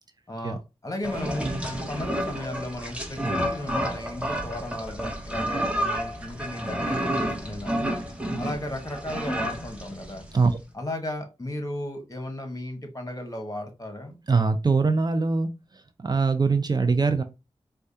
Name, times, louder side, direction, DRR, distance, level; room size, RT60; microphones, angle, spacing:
voice 1, 0.3-7.9 8.4-10.2 10.7-14.2, left 1 dB, 35° left, 1.2 m, -35 dB
sound 1, 1.0-10.5, equal, 10° right, 1.0 m, -30 dB
voice 2, 14.3-15.5 16.0-17.2, right 4 dB, 40° right, 0.5 m, -22 dB
4.5 x 2.3 x 2.7 m
cardioid pair, 55°, 11 cm